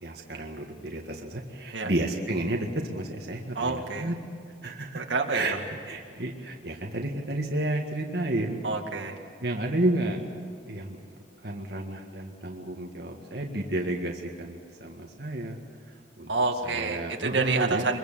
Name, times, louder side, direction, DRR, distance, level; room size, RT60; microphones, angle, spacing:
voice 1, 0.0-4.2 4.6-5.0 5.3-8.6 9.4-10.2 10.7-15.6 15.9-16.3 16.6-17.9, right 1 dB, 60° right, 1 dB, 1.9 m, -31 dB
voice 2, 3.6-4.1 4.9-5.6 8.6-9.2 16.3-18.0, right 3 dB, 80° right, 3 dB, 2.2 m, -28 dB
25.0 x 22.0 x 7.5 m, 2.3 s
head